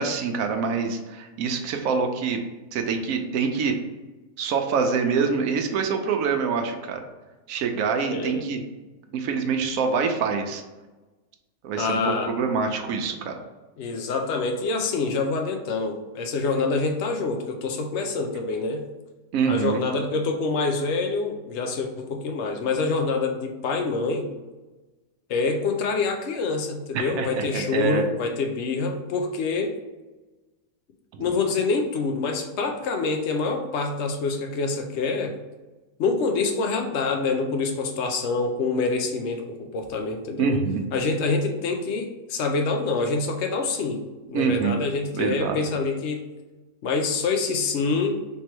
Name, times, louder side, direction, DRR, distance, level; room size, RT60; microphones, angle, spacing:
voice 1, 0.0-2.4 2.7-3.7 4.4-7.0 7.5-8.6 9.1-10.6 11.6-13.3 19.3-19.8 26.9-28.0 31.1-31.2 40.4-40.8 44.3-44.7 45.1-45.6, right 5 dB, 75° right, 4 dB, 1.0 m, -25 dB
voice 2, 8.1-8.5 11.8-12.3 13.8-18.8 19.5-24.3 25.3-29.7 31.2-35.4 36.0-40.6 40.9-44.0 44.3-46.3 46.8-48.2, left 3 dB, 60° left, 4 dB, 0.8 m, -26 dB
3.4 x 3.1 x 4.3 m, 1.2 s
omnidirectional pair, 1.5 m